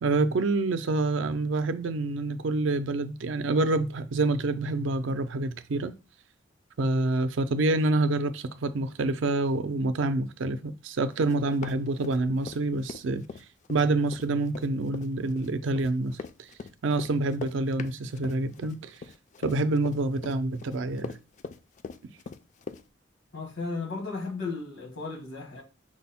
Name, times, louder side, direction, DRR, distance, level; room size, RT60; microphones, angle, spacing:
voice 1, 0.0-5.9 6.8-13.2 13.7-16.2 16.8-19.0 19.4-21.2, right 2 dB, 75° right, 0.4 m, -27 dB
Run, 11.2-12.6 12.9-22.8, left 4 dB, 40° left, 0.3 m, -41 dB
voice 2, 23.3-25.6, left 3 dB, 90° left, 1.5 m, -35 dB
6.0 x 2.0 x 4.2 m
head